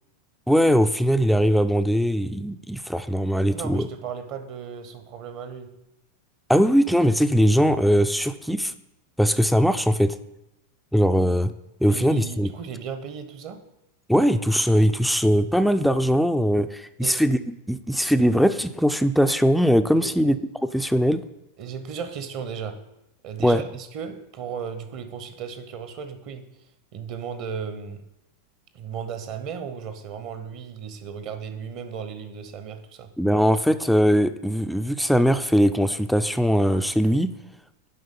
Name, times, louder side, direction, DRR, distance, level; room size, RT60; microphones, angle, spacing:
voice 1, 0.5-3.9 6.5-8.7 9.2-10.2 10.9-11.5 11.8-12.5 14.1-20.4 20.7-21.2 23.4-23.6 33.2-37.3, equal, ahead, 10 dB, 0.3 m, -20 dB
voice 2, 3.5-5.7 11.9-13.6 17.0-17.2 20.0-20.3 21.6-22.8 23.2-26.4 26.9-28.0 28.7-33.1, right 7 dB, 40° right, 9 dB, 0.8 m, -35 dB
10.0 x 3.7 x 5.3 m, 0.89 s
figure-of-eight pair, 90°, 0 cm